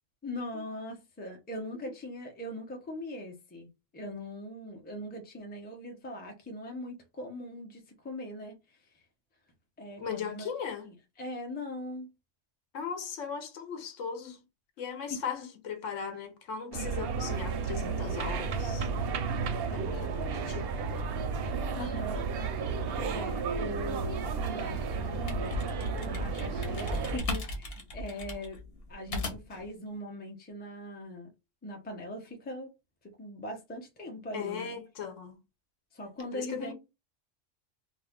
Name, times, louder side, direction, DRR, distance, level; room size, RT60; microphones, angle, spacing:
voice 1, 0.2-3.7 3.9-8.6 9.8-10.5 10.8-12.1 21.7-22.2 23.0-25.5 26.0-28.6 28.9-31.3 31.6-32.7 33.2-34.8 35.9-36.7, left 1 dB, 10° left, 0.5 m, -41 dB
voice 2, 10.0-10.9 12.7-14.4 14.8-18.9 19.7-20.9 25.8-25.9 34.3-35.4 36.3-36.7, left 6 dB, 75° left, 1.0 m, -38 dB
sound 1, 16.7-27.2, right 5 dB, 65° right, 0.6 m, -33 dB
sound 2, 25.1-29.7, left 2 dB, 50° left, 1.0 m, -37 dB
2.4 x 2.3 x 3.5 m
omnidirectional pair, 1.3 m